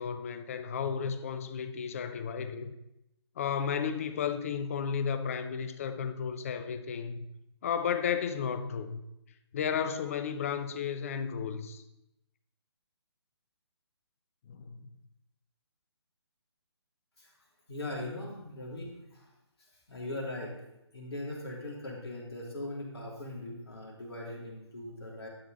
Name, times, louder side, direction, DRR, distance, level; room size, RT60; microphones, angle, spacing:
voice 1, 0.0-2.7 3.4-7.2 7.6-9.0 9.5-11.8 14.5-14.8, left 7 dB, 30° left, 0.6 m, -33 dB
voice 2, 17.7-19.2 19.9-20.5 20.9-25.3, left 1 dB, 65° left, 3.2 m, -40 dB
11.5 x 6.2 x 4.2 m
figure-of-eight pair, 140°, 14 cm